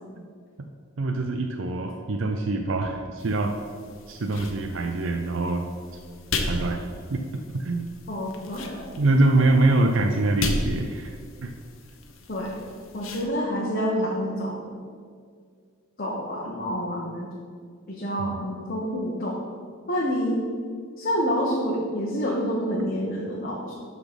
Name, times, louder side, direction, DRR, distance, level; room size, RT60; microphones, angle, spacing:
voice 1, 1.0-3.6 4.1-5.6 6.4-7.2 7.6-7.9 9.0-11.5 18.2-18.4, right 2 dB, 65° right, 4 dB, 0.6 m, -24 dB
sound 1, 3.2-13.3, left 2 dB, 75° left, 0.9 m, -35 dB
voice 2, 8.1-8.9 12.3-12.6 12.9-14.6 16.0-17.3 17.9-19.4 19.9-20.4 21.0-23.7, equal, 45° left, -4 dB, 1.1 m, -28 dB
12.0 x 4.1 x 5.2 m, 2.1 s
head